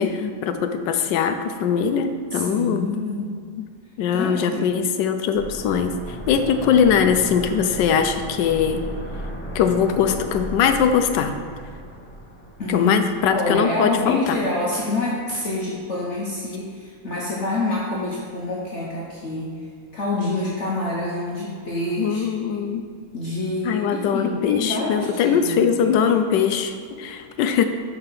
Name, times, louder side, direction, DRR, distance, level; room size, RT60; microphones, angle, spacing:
voice 1, 0.0-2.9 3.6-3.7 4.0-8.8 9.5-11.3 12.7-14.4 22.0-22.9 23.6-27.7, left 7 dB, 90° left, 8 dB, 1.3 m, -21 dB
voice 2, 2.3-3.4 4.1-4.9 12.6-19.5 19.9-22.6 23.1-23.8 24.1-26.1, left 2 dB, 45° left, -6 dB, 1.2 m, -27 dB
sound 1, 5.3-14.1 14.3-14.4, equal, 5° left, 1.1 m, -36 dB
6.7 x 4.7 x 5.7 m, 2.1 s
omnidirectional pair, 1.8 m